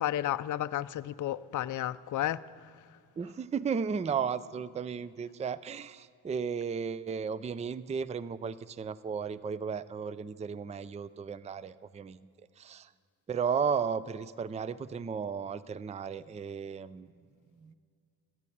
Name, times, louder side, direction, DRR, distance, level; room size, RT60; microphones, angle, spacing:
voice 1, 0.0-2.4, left 12 dB, 50° left, 0.5 m, -32 dB
voice 2, 3.2-12.3 12.6-12.9 13.3-17.1 17.6-17.7, right 6 dB, 20° right, 0.4 m, -34 dB
15.0 x 11.0 x 8.6 m
cardioid pair, 100°, 40 cm